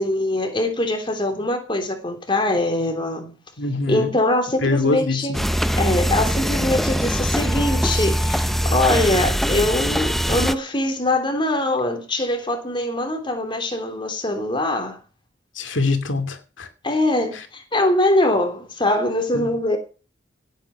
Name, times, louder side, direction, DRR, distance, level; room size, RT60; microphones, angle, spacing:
voice 1, 0.0-3.3 3.9-5.4 5.7-15.0 16.8-19.8, left 1 dB, 25° left, 3.2 m, -22 dB
voice 2, 3.6-4.1 4.6-5.4 15.6-16.7 19.3-19.5, left 3 dB, 85° left, 2.5 m, -23 dB
sound 1, 5.3-10.5, equal, ahead, 0.7 m, -22 dB
17.5 x 9.0 x 5.9 m
head